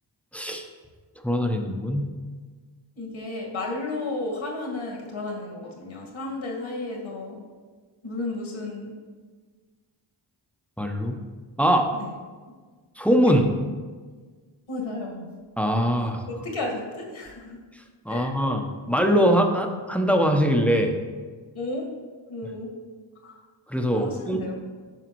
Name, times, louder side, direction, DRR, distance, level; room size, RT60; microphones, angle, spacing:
voice 1, 0.3-0.6 1.2-2.1 10.8-11.2 11.6-11.9 13.0-13.4 15.6-16.2 18.0-20.9 23.7-24.4, equal, 5° left, 3 dB, 0.8 m, -22 dB
voice 2, 3.0-7.4 8.0-9.0 11.9-12.1 13.3-13.4 14.7-15.3 16.3-17.6 18.1-18.4 21.5-21.9 22.3-22.7 23.2-23.4 23.9-24.6, left 2 dB, 70° left, -1 dB, 1.9 m, -33 dB
9.2 x 5.8 x 3.1 m, 1.5 s
cardioid pair, 60°, 50 cm